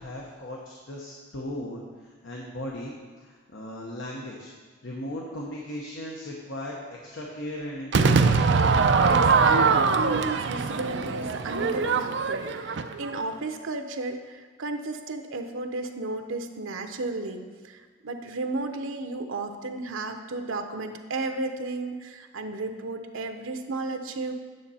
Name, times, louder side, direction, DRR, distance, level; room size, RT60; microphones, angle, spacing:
voice 1, 0.0-2.9 3.2-4.5 4.8-8.2, left 1 dB, 70° left, -2 dB, 1.0 m, -37 dB
Crowd / Fireworks, 7.9-13.2, right 4 dB, 60° right, 0.4 m, -22 dB
voice 2, 8.5-24.3, right 2 dB, 90° right, 6 dB, 0.8 m, -33 dB
9.5 x 6.6 x 4.2 m, 1.5 s
head